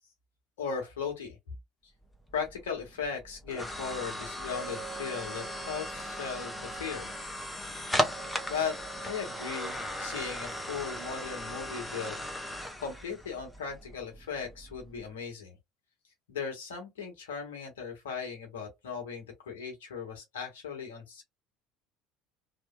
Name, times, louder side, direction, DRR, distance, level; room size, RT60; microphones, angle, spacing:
voice 1, 0.6-1.4 2.3-7.1 8.5-12.2 12.4-15.6 16.3-21.2, left 6 dB, 80° left, 1.1 m, -37 dB
sound 1, 2.0-15.1, equal, 10° left, 0.8 m, -37 dB
2.9 x 2.2 x 2.2 m
hypercardioid pair, 65°, 0 cm